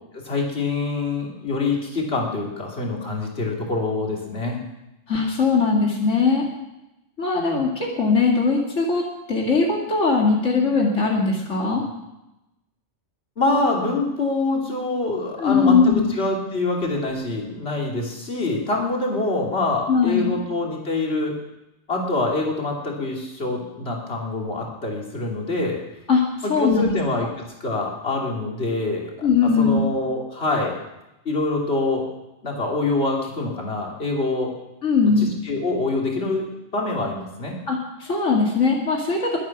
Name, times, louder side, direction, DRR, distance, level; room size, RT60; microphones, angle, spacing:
voice 1, 0.1-4.6 13.4-21.3 21.9-25.8 26.4-27.3 27.6-29.3 29.6-30.7 31.2-32.1 32.4-34.5 35.0-36.5 36.7-37.6, left 2 dB, 60° left, -1 dB, 3.1 m, -25 dB
voice 2, 5.1-6.5 7.2-9.0 9.3-11.8 15.4-16.1 19.9-20.3 26.1-26.9 29.2-29.9 34.8-35.3 37.7-39.4, left 4 dB, 85° left, -1 dB, 2.5 m, -20 dB
22.0 x 9.0 x 6.0 m, 0.93 s
omnidirectional pair, 1.2 m